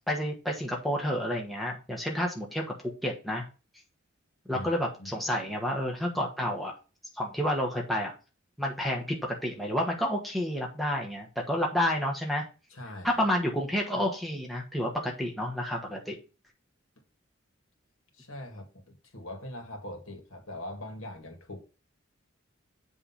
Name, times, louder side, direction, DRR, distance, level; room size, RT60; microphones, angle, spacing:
voice 1, 0.1-3.5 4.4-6.7 7.1-8.1 8.6-12.4 13.0-16.2, equal, ahead, 1.2 m, -30 dB
voice 2, 12.7-13.2 18.1-21.6, left 1 dB, 80° left, 2.1 m, -42 dB
7.7 x 3.4 x 5.7 m
head